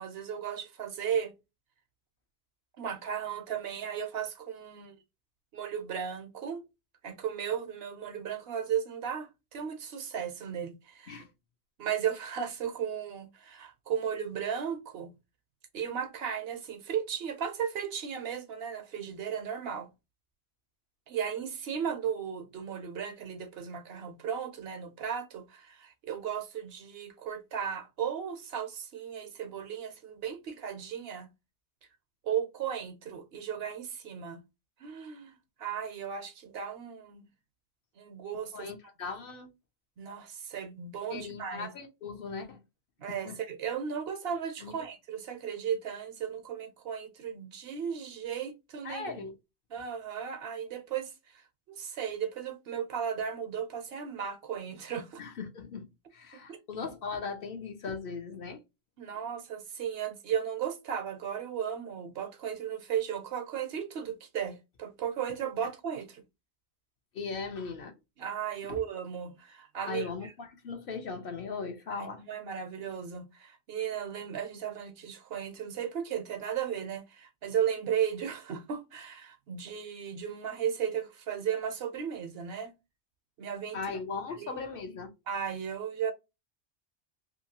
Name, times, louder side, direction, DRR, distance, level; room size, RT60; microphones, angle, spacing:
voice 1, 0.0-1.3 2.8-5.0 5.5-6.6 7.0-11.2 11.8-15.1 15.7-19.9 21.1-31.3 32.2-34.4 34.8-35.3 35.6-37.3 38.0-38.7 40.0-41.7 43.0-49.3 49.7-55.2 56.3-56.6 59.0-66.2 68.2-70.3 71.9-82.7 83.4-83.8 84.4-84.6 85.3-86.1, right 8 dB, 65° right, 0.8 m, -35 dB
voice 2, 38.5-39.5 41.1-42.6 43.1-43.4 44.6-44.7 48.8-49.3 55.2-58.6 67.1-67.9 68.7-68.8 69.9-72.2 83.7-85.1, left 4 dB, 60° left, 0.8 m, -38 dB
2.8 x 2.7 x 2.7 m
omnidirectional pair, 1.2 m